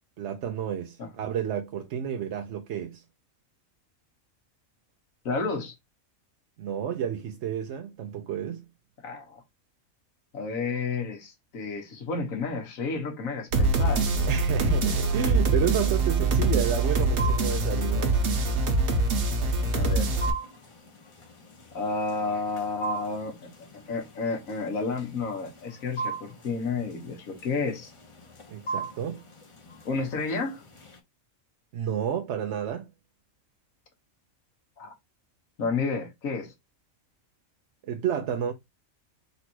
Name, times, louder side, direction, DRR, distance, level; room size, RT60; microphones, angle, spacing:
voice 1, 0.2-3.0 6.6-8.6 14.3-18.2 28.5-29.2 31.7-32.9 37.8-38.5, right 9 dB, 65° right, 0.8 m, -31 dB
voice 2, 5.3-5.8 9.0-9.4 10.3-14.1 14.6-14.9 19.7-20.1 21.7-23.5 23.9-27.9 29.9-30.6 34.8-34.9 35.6-36.5, left 4 dB, 75° left, 1.6 m, -31 dB
sound 1, 13.5-20.3, right 2 dB, 80° right, 1.5 m, -24 dB
sound 2, 15.9-31.0, right 4 dB, 30° left, 0.7 m, -41 dB
4.0 x 2.6 x 4.4 m
omnidirectional pair, 1.5 m